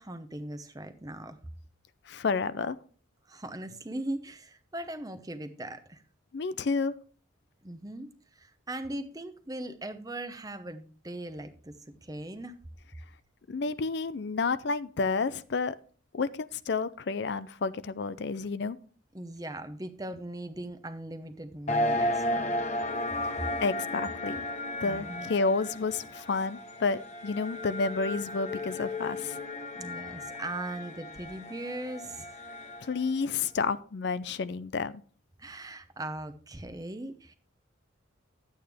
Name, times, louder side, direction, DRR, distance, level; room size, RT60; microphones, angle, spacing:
voice 1, 0.0-1.4 3.3-6.0 7.6-12.6 19.1-22.6 23.4-23.5 24.8-25.3 29.7-32.3 35.4-37.3, right 1 dB, 20° right, 9 dB, 0.8 m, -39 dB
voice 2, 2.1-2.8 6.3-6.9 13.5-15.8 16.1-18.8 23.6-24.4 24.8-29.4 32.8-35.0, left 4 dB, 55° left, 15 dB, 0.4 m, -30 dB
ab fog atmos, 21.7-33.1, left 1 dB, 35° left, 1.1 m, -34 dB
11.0 x 8.7 x 3.5 m, 0.40 s
head